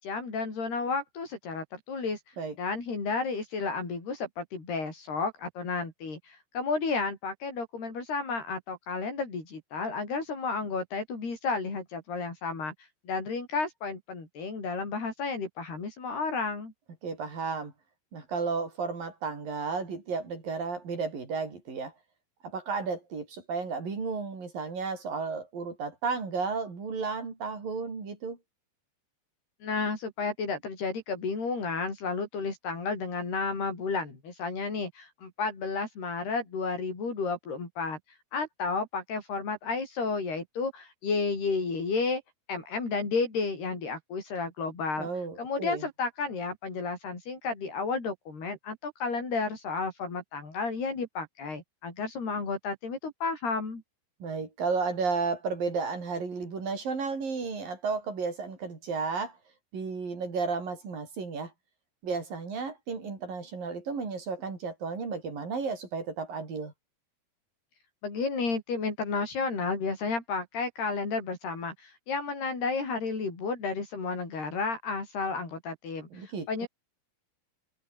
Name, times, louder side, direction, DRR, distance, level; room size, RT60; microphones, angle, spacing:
voice 1, 0.0-2.2 2.6-12.7 13.1-16.7 29.6-38.0 38.3-42.2 42.5-45.1 45.4-53.8 68.0-76.7, left 4 dB, 75° left, 9.2 m, -32 dB
voice 2, 17.0-17.7 18.1-21.9 22.4-28.4 45.0-45.8 54.2-59.4 59.7-61.5 62.0-66.7 76.1-76.7, right 4 dB, 55° right, 7.2 m, -33 dB
omnidirectional pair, 4.7 m